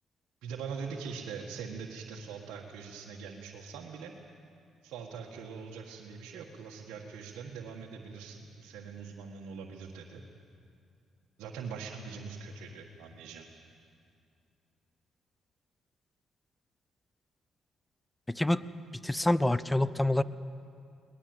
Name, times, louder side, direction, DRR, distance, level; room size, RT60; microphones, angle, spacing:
voice 1, 0.4-4.1 4.8-10.2 11.4-13.5, right 5 dB, 80° right, -1 dB, 1.7 m, -42 dB
voice 2, 18.3-18.6 19.0-20.2, left 1 dB, 10° left, 17 dB, 0.7 m, -26 dB
22.5 x 19.5 x 8.0 m, 2.4 s
supercardioid pair, 70°, 0 cm